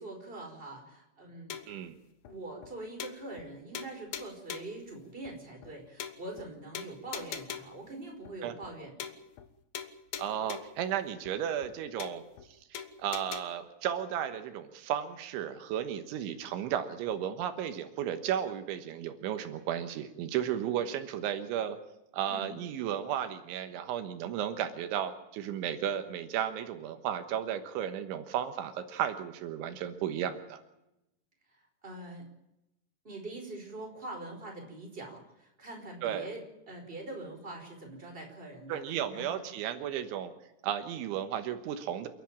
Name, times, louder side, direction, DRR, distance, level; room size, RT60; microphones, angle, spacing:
voice 1, 0.0-1.6 2.3-9.1 22.3-22.5 31.5-32.3 33.0-39.4, right 2 dB, 10° right, 1 dB, 4.7 m, -44 dB
sound 1, 1.5-1.8 2.3-2.4 2.6-2.7 3.0-3.5 3.8-4.8 5.3-5.4 5.6-5.7 6.0-6.5 6.8-7.8 8.3-8.4 8.6-8.7 9.0-9.5 9.8-10.8 11.3-11.4 11.6-11.7 12.0-12.5 12.8-13.4, left 9 dB, 65° left, 2.6 m, -42 dB
voice 2, 10.2-12.2 12.7-21.8 22.1-30.6 36.0-36.3 38.7-40.3 40.6-42.1, right 10 dB, 85° right, 8 dB, 3.6 m, -34 dB
29.0 x 11.0 x 8.9 m, 0.88 s
omnidirectional pair, 5.4 m